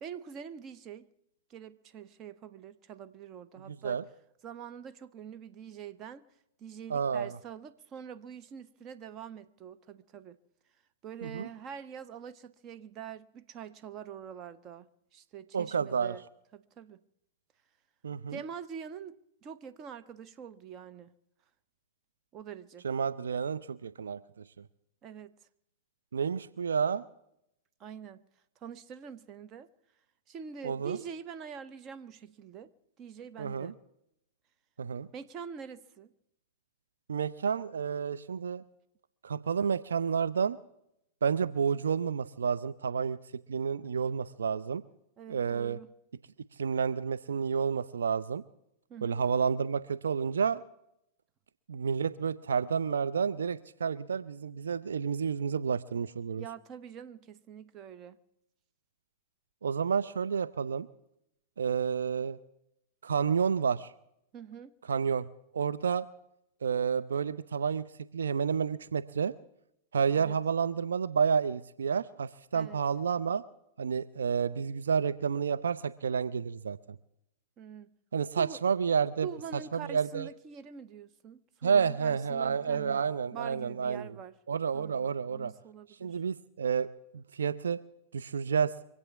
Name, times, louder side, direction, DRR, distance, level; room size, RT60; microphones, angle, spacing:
voice 1, 0.0-1.1 1.5-4.0 4.4-6.3 6.6-10.4 11.0-16.2 16.5-17.0 18.3-21.1 22.3-22.9 25.0-25.3 27.8-28.2 28.6-29.7 30.3-32.7 33.0-33.7 35.1-36.1 45.2-45.9 48.9-49.2 56.4-58.2 64.3-64.7 70.2-70.4 72.5-72.8 77.6-77.9 78.4-78.6 79.2-83.1 83.3-84.3 84.7-86.2, right 7 dB, 35° right, 0.9 m, -45 dB
voice 2, 3.7-4.0 6.9-7.4 11.2-11.5 15.5-16.2 18.0-18.4 22.8-24.2 26.1-27.0 30.6-31.0 33.4-33.7 34.8-35.1 37.1-38.6 39.2-40.6 41.2-43.2 43.5-44.8 45.3-45.8 46.6-48.4 49.0-50.6 51.7-56.4 59.6-60.9 61.6-62.4 63.0-63.9 64.9-65.3 65.5-66.1 66.6-67.9 68.1-69.3 69.9-73.4 73.8-76.8 78.1-79.3 79.7-80.3 81.6-84.0 84.5-85.5 86.0-86.9 87.1-87.8 88.1-88.7, right 6 dB, 75° right, 0.5 m, -30 dB
24.5 x 8.4 x 7.0 m
figure-of-eight pair, 100°, 0 cm